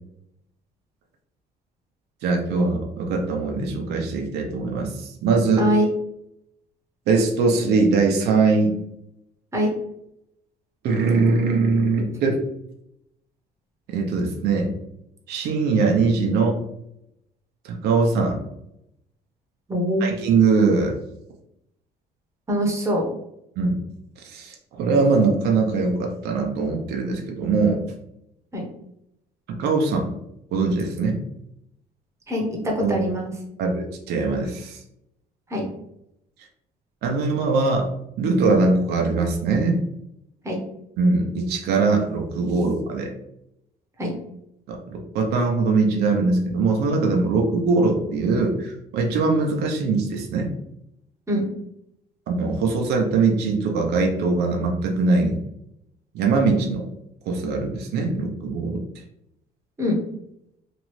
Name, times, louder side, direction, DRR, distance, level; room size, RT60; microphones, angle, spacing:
voice 1, 2.2-5.6 7.1-8.7 10.8-12.4 13.9-14.7 15.3-16.6 17.6-18.4 20.0-21.0 23.6-23.8 24.2-27.8 29.5-30.1 30.5-31.2 32.8-33.0 33.6-34.8 37.0-37.9 38.2-39.8 41.0-43.1 44.7-50.5 52.3-55.4 56.1-56.8 57.3-58.8, right 4 dB, 75° right, 1 dB, 0.6 m, -21 dB
voice 2, 19.7-20.1 22.5-23.0 28.5-28.7 32.3-33.3 35.5-35.6 40.4-40.6 44.0-44.1 51.3-51.5 59.8-60.0, equal, 15° right, 0 dB, 0.9 m, -23 dB
2.9 x 2.6 x 3.0 m, 0.81 s
cardioid pair, 110°, 17 cm